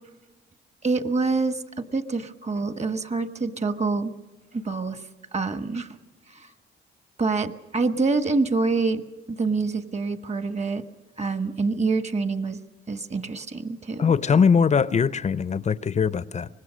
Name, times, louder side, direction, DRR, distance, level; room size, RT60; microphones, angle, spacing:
voice 1, 0.8-4.1 4.5-5.0 5.3-6.0 6.3-6.5 7.2-9.0 9.3-10.8 11.2-12.6 12.9-14.0, right 3 dB, 35° right, 1.4 m, -26 dB
voice 2, 14.0-16.5, left 6 dB, 35° left, 0.6 m, -21 dB
24.5 x 20.0 x 6.3 m
cardioid pair, 90°, 20 cm